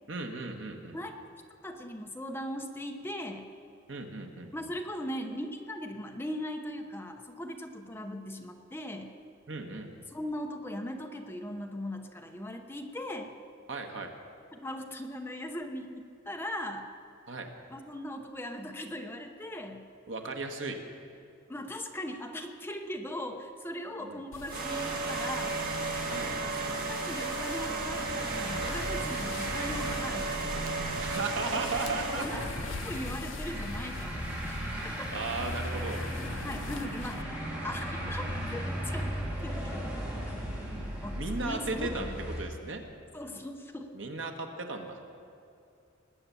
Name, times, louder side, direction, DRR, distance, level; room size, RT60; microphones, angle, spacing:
voice 1, 0.1-1.0 3.9-4.7 9.5-10.0 13.7-14.1 17.3-17.5 20.1-20.8 24.0-24.2 26.1-26.4 31.0-32.3 34.8-34.9 35.1-36.0 40.5-42.1 42.4-42.8 43.9-45.0, right 3 dB, 70° right, 3 dB, 1.5 m, -36 dB
voice 2, 1.6-3.5 4.5-9.1 10.1-13.3 14.6-16.9 17.7-19.9 21.5-25.6 26.6-30.4 31.6-31.7 32.2-32.4 32.8-34.6 35.0-35.1 36.4-37.4 37.6-38.6 38.9-39.1 39.4-40.0 41.0-42.3 43.1-43.9, left 1 dB, 10° left, 4 dB, 0.8 m, -39 dB
sound 1, 24.3-37.2, left 5 dB, 75° left, 0.5 m, -45 dB
sound 2, 24.5-32.6, right 3 dB, 50° right, 1.9 m, -34 dB
sound 3, 27.5-42.4, equal, 5° right, 3.5 m, -37 dB
20.0 x 8.8 x 7.0 m, 2.5 s
head